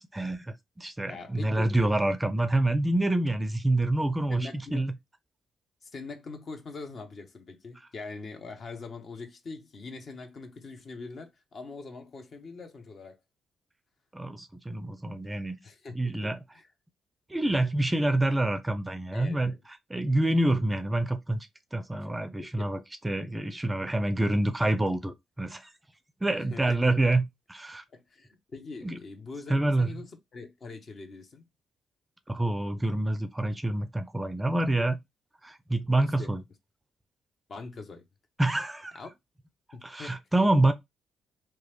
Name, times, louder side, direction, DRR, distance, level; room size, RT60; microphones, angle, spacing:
voice 1, 0.0-4.9 14.1-15.6 15.9-16.4 17.3-19.5 19.9-25.7 26.2-27.2 27.5-27.8 28.8-29.0 29.5-30.0 32.3-35.0 35.4-36.4 38.4-39.0 39.8-40.7, right 1 dB, 15° right, 0.4 m, -27 dB
voice 2, 1.1-1.7 4.3-4.8 5.8-13.2 15.6-15.9 16.2-16.7 19.1-19.6 22.4-22.7 26.5-26.9 27.9-31.5 35.9-36.3 37.5-38.0 38.9-39.1 39.7-40.2, left 3 dB, 50° left, 0.7 m, -43 dB
3.0 x 2.2 x 3.0 m
figure-of-eight pair, 40°, 0 cm